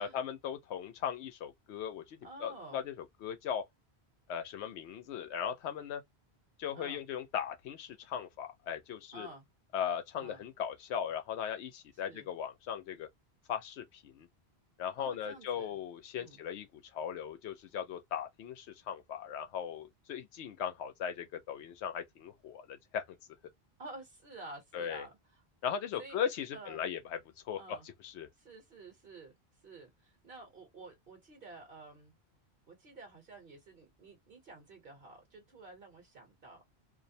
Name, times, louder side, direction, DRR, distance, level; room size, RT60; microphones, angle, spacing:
voice 1, 0.0-2.9 3.2-3.6 4.3-6.0 6.6-9.3 9.7-13.1 13.5-14.3 14.8-23.2 24.7-25.0 25.6-27.2 27.5-27.8 28.0-28.3, left 8 dB, 85° left, 0.9 m, -38 dB
voice 2, 2.2-2.8 6.7-7.0 9.1-9.5 10.2-10.4 12.0-12.3 15.0-15.8 16.1-16.4 23.8-25.4 26.0-26.2 26.5-26.8 27.6-27.9 28.4-29.3 29.6-32.1 32.7-36.6, right 2 dB, 60° right, 1.1 m, -51 dB
2.5 x 2.0 x 2.6 m
omnidirectional pair, 1.1 m